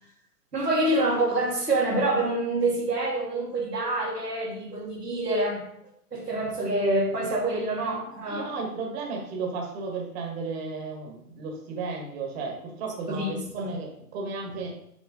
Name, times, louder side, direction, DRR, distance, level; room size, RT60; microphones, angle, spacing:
voice 1, 0.5-5.7 6.1-8.5 13.1-13.7, right 2 dB, 90° right, -2 dB, 2.5 m, -26 dB
voice 2, 8.3-14.8, right 4 dB, 40° right, 0 dB, 1.8 m, -34 dB
7.1 x 6.7 x 3.8 m, 0.73 s
figure-of-eight pair, 125°, 46 cm